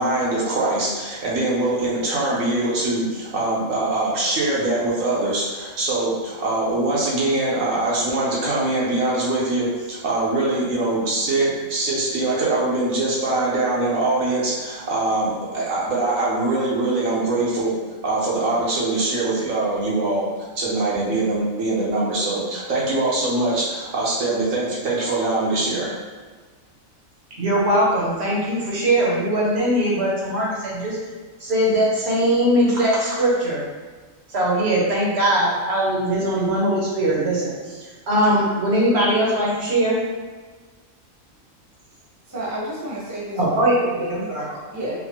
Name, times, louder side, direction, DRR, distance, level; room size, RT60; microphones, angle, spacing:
voice 1, 0.0-17.7 18.0-20.2 20.5-25.9, right 2 dB, 75° right, -6 dB, 1.2 m, -23 dB
voice 2, 27.4-31.0 31.4-33.6 34.3-40.0 43.4-44.6, right 1 dB, 60° right, -5 dB, 1.0 m, -21 dB
voice 3, 42.3-44.1 44.7-45.0, equal, 15° right, -7 dB, 0.8 m, -30 dB
4.1 x 2.1 x 2.9 m, 1.4 s
omnidirectional pair, 1.4 m